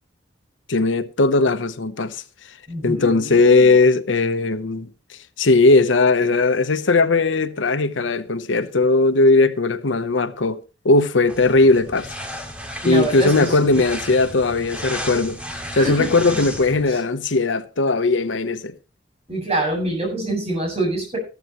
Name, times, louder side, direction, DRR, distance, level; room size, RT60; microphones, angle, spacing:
voice 1, 0.7-2.2 2.8-12.1 12.8-15.4 15.7-18.7, left 3 dB, 85° left, 0.9 m, -18 dB
voice 2, 2.7-3.7 12.8-13.8 15.7-16.4 16.9-17.0 19.3-21.2, right 1 dB, 35° right, 7.7 m, -26 dB
sound 1, 11.3-16.9, equal, 5° right, 2.1 m, -33 dB
14.0 x 13.5 x 3.1 m
head